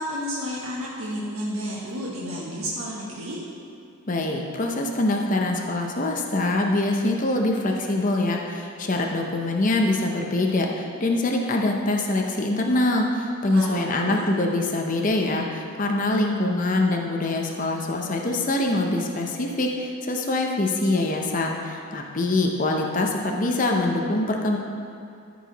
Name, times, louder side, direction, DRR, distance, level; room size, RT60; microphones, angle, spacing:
voice 1, 0.0-3.4 13.5-14.2, equal, 85° right, -6 dB, 1.4 m, -31 dB
voice 2, 4.1-24.6, left 2 dB, 40° left, 1 dB, 0.7 m, -24 dB
14.0 x 4.7 x 4.1 m, 2.5 s
head